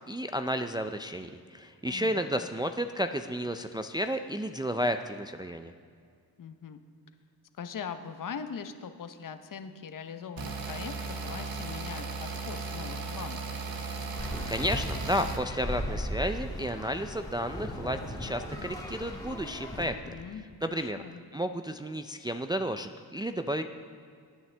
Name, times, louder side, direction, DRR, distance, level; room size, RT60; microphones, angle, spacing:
voice 1, 0.1-5.7 14.5-20.1 20.6-21.0 21.3-23.6, equal, 10° right, 7 dB, 0.3 m, -32 dB
voice 2, 1.8-2.4 6.4-6.8 7.6-11.0 11.2-13.5 20.1-20.5 20.7-21.2, left 6 dB, 50° left, 9 dB, 0.8 m, -41 dB
sound 1, 10.4-15.4, right 3 dB, 60° right, 1.3 m, -36 dB
sound 2, 14.1-19.9, equal, 10° left, 1.7 m, -37 dB
18.0 x 9.4 x 3.4 m, 2.2 s
cardioid pair, 85°, 40 cm